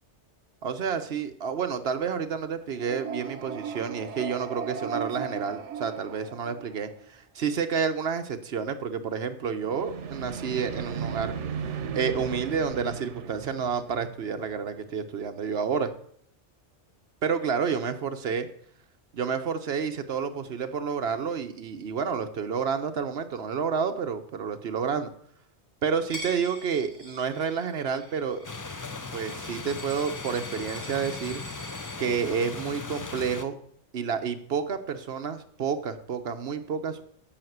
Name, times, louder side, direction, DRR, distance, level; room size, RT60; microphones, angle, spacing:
voice 1, 0.6-11.3 11.6-15.9 17.2-18.5 19.1-25.1 25.8-28.5 29.1-31.4 32.0-33.5 33.9-37.0, right 6 dB, 65° right, 8 dB, 1.1 m, -30 dB
sound 1, 2.7-7.0 9.6-14.6, right 6 dB, 90° right, 1.1 m, -36 dB
Coin (dropping), 26.1-32.0, left 1 dB, 35° right, 3.9 m, -44 dB
sound 2, 28.4-33.4, left 4 dB, 25° left, 0.4 m, -38 dB
10.5 x 5.8 x 7.9 m, 0.65 s
omnidirectional pair, 1.2 m